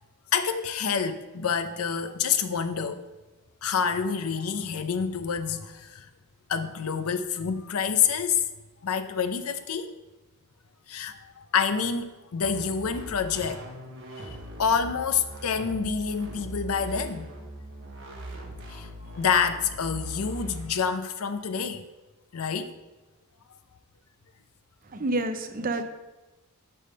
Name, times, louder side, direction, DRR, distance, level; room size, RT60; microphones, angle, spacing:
voice 1, 0.3-3.0 3.6-6.0 6.5-8.4 8.8-9.9 10.9-13.7 14.2-17.3 18.7-18.9 19.1-21.8 22.3-22.7, left 6 dB, 75° left, 10 dB, 0.6 m, -27 dB
sound 1, 12.4-20.7, right 1 dB, 60° right, 1.1 m, -40 dB
voice 2, 24.9-25.8, right 2 dB, 40° right, 8 dB, 0.6 m, -28 dB
8.5 x 3.6 x 6.4 m, 1.1 s
head